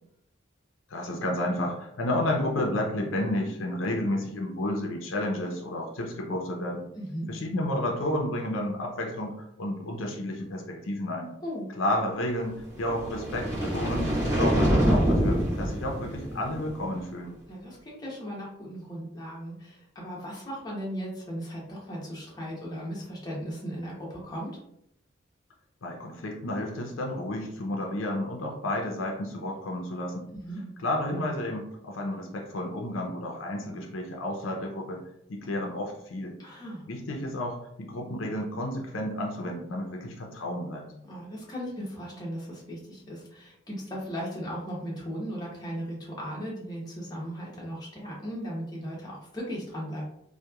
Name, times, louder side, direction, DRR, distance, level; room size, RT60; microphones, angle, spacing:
voice 1, 0.9-6.9 7.3-11.3 11.8-17.4 25.8-30.3 30.8-35.0 35.3-36.4 36.9-40.9, left 1 dB, 85° left, 1 dB, 0.5 m, -31 dB
voice 2, 6.9-7.3 11.4-11.7 17.5-24.5 30.3-30.6 36.4-36.8 41.0-50.0, equal, 20° left, -5 dB, 0.7 m, -37 dB
sound 1, 12.7-17.0, equal, 20° right, 1.0 m, -26 dB
2.9 x 2.2 x 2.2 m, 0.75 s
head